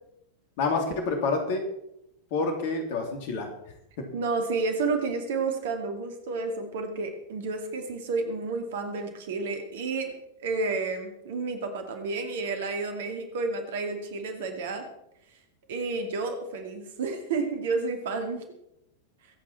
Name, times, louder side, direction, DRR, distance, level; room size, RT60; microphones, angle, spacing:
voice 1, 0.6-1.6 2.3-3.5 4.0-4.1, left 3 dB, 50° left, 4 dB, 3.1 m, -28 dB
voice 2, 4.1-10.1 10.4-14.9 15.7-18.4, right 4 dB, 55° right, 6 dB, 2.4 m, -30 dB
23.0 x 8.7 x 4.4 m, 0.80 s
figure-of-eight pair, 90°, 0 cm